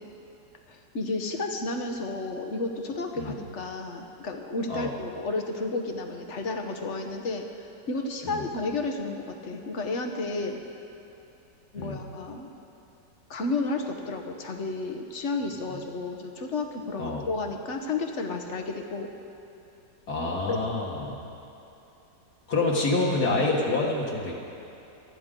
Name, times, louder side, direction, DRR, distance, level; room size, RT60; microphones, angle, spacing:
voice 1, 0.7-10.6 11.7-12.5 13.3-19.1 20.5-20.6, left 3 dB, 50° left, 4 dB, 1.2 m, -32 dB
voice 2, 20.1-21.2 22.5-24.3, left 2 dB, 65° left, -3 dB, 2.1 m, -27 dB
27.0 x 9.6 x 3.8 m, 3.0 s
omnidirectional pair, 1.9 m